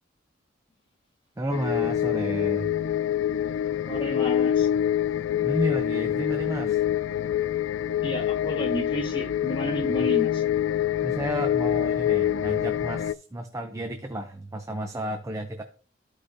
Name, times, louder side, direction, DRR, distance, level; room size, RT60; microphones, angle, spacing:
voice 1, 1.4-2.7 5.4-6.8 9.9-10.1 11.0-15.6, right 1 dB, 15° right, 6 dB, 0.5 m, -32 dB
sound 1, 1.5-13.1, left 10 dB, 85° left, 0.3 m, -25 dB
voice 2, 3.8-4.8 5.2-5.5 8.0-10.4, equal, 25° left, 2 dB, 1.6 m, -32 dB
13.5 x 4.9 x 2.7 m, 0.41 s
head